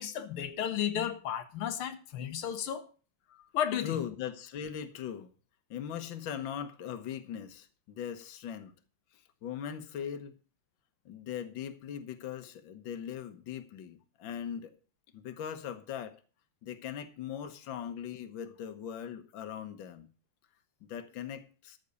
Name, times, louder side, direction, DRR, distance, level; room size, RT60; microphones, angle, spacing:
voice 1, 0.0-2.9 3.5-4.0, left 9 dB, 90° left, 1.9 m, -33 dB
voice 2, 3.8-5.3 5.7-8.7 9.1-10.3 11.1-14.7 15.1-16.2 16.6-20.1 20.9-21.8, left 9 dB, 65° left, 1.8 m, -40 dB
13.5 x 6.6 x 6.9 m
omnidirectional pair, 2.3 m